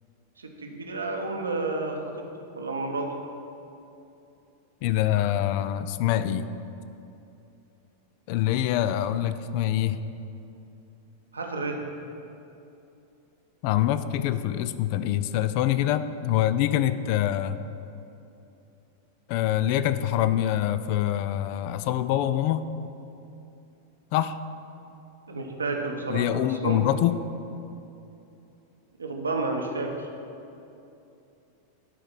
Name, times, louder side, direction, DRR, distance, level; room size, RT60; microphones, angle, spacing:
voice 1, 0.4-2.2 2.5-3.1 11.3-11.8 25.3-26.8 29.0-30.1, right 3 dB, 75° right, 2 dB, 0.9 m, -31 dB
voice 2, 4.8-6.5 8.3-10.0 13.6-17.6 19.3-22.7 24.1-24.4 26.1-27.3, left 12 dB, 45° left, 13 dB, 0.3 m, -25 dB
9.7 x 4.6 x 6.2 m, 2.8 s
figure-of-eight pair, 90°, 0 cm